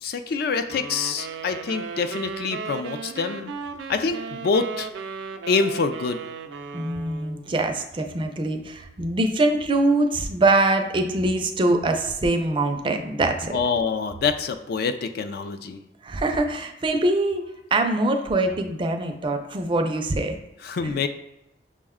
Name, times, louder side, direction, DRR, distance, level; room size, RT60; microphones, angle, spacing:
voice 1, 0.0-3.5 3.9-4.9 5.5-6.2 13.5-15.8 20.6-21.1, left 5 dB, 60° left, 9 dB, 0.3 m, -26 dB
sound 1, 0.7-7.5, right 5 dB, 90° right, 0.4 m, -36 dB
voice 2, 6.7-13.5 16.0-17.4 17.7-20.3 20.8-20.9, right 2 dB, 30° right, 5 dB, 0.4 m, -23 dB
6.0 x 2.1 x 3.5 m, 0.88 s
head